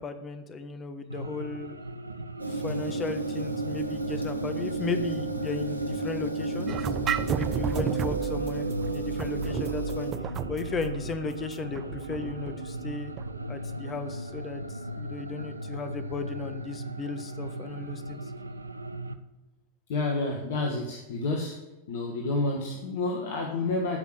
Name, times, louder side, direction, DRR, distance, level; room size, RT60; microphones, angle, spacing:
voice 1, 0.0-1.8 2.5-6.9 7.3-10.1 10.5-13.1 13.5-18.3, left 4 dB, 20° left, 9 dB, 1.4 m, -35 dB
sound 1, 1.1-19.2, equal, 80° right, 0.7 m, -38 dB
sound 2, 2.4-10.1, right 3 dB, 90° left, 1.2 m, -32 dB
sound 3, 6.7-13.4, right 8 dB, 30° right, 0.6 m, -33 dB
voice 2, 19.9-21.6 21.9-24.0, left 2 dB, 55° left, 2 dB, 1.7 m, -29 dB
14.0 x 6.0 x 8.0 m, 1.0 s
figure-of-eight pair, 90°, 0 cm